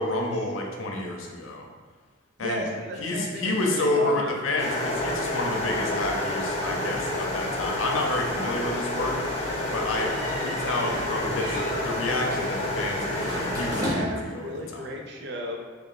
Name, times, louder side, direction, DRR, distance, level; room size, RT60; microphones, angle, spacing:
voice 1, 0.0-1.7 2.4-2.7 3.0-9.2 9.7-14.9, left 2 dB, 85° left, 1 dB, 0.6 m, -29 dB
voice 2, 2.4-4.3 13.8-15.6, equal, 60° right, 1 dB, 0.5 m, -34 dB
sound 1, 4.6-13.9, left 1 dB, 35° left, 0.6 m, -29 dB
sound 2, 9.9-11.1 11.4-11.8 13.1-14.3, equal, 20° right, 0.8 m, -34 dB
3.0 x 3.0 x 4.0 m, 1.5 s
head